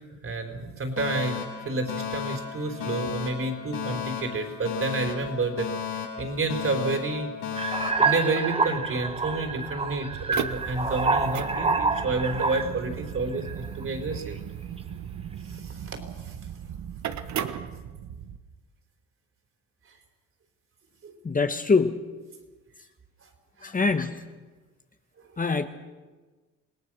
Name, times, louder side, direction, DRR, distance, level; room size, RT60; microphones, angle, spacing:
voice 1, 0.0-5.7 6.2-7.3 8.0-14.4 15.5-16.0 16.3-16.4 21.0-21.1 23.6-23.7, right 3 dB, 45° right, 5 dB, 4.4 m, -30 dB
Alarm, 1.0-9.0, left 7 dB, 90° left, 6.4 m, -35 dB
sound 1, 7.6-12.8 13.4-13.8, right 4 dB, 20° right, 1.6 m, -27 dB
sound 2, 10.1-18.4, right 9 dB, 65° right, 1.3 m, -36 dB
voice 2, 21.2-22.1 23.6-24.2 25.4-25.7, left 4 dB, 25° left, 7 dB, 1.3 m, -24 dB
27.5 x 18.5 x 6.4 m, 1.3 s
cardioid pair, 90°, 30 cm